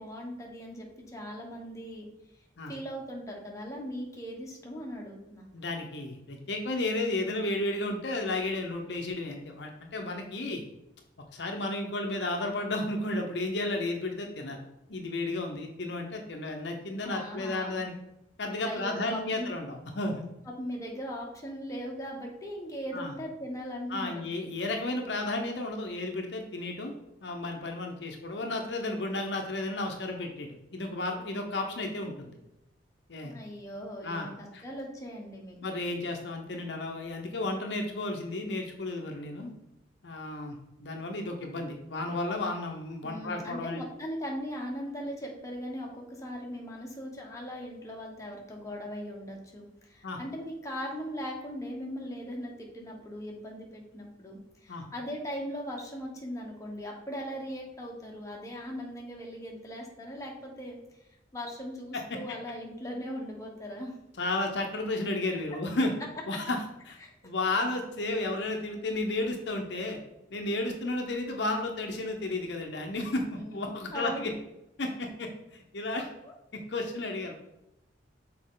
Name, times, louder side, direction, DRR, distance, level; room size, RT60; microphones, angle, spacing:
voice 1, 0.0-2.1 2.7-5.5 17.0-17.9 18.6-19.5 20.6-24.2 33.2-35.7 43.0-60.8 61.3-63.9 67.0-67.1 73.3-73.6 73.9-74.3 75.9-76.3, equal, 15° left, -1 dB, 1.2 m, -39 dB
voice 2, 5.5-10.6 11.3-14.6 14.9-17.9 18.4-20.2 22.9-23.1 23.9-26.9 27.2-32.4 33.1-33.3 34.0-34.3 34.5-34.6 35.6-39.5 40.0-43.8 50.0-50.2 54.7-54.8 61.9-62.0 64.2-65.9 66.3-66.6 66.8-67.0 67.2-70.0 70.3-74.3 74.8-76.1 76.5-77.3, left 2 dB, 65° left, 3 dB, 0.8 m, -33 dB
6.4 x 4.2 x 3.8 m, 0.91 s
head